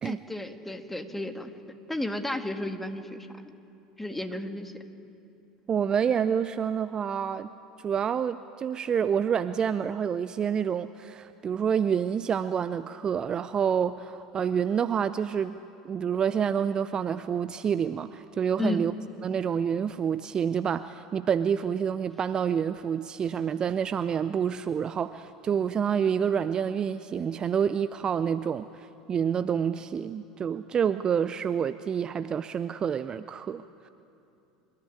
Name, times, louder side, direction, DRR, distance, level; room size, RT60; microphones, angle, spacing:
voice 1, 0.0-1.5 1.9-3.3 4.0-4.7 18.6-18.9, left 1 dB, 5° left, 8 dB, 1.9 m, -33 dB
voice 2, 5.7-7.5 7.8-15.6 15.8-18.9 19.2-33.9, right 7 dB, 30° right, 13 dB, 0.5 m, -28 dB
27.0 x 14.0 x 9.6 m, 2.8 s
figure-of-eight pair, 75°, 3 cm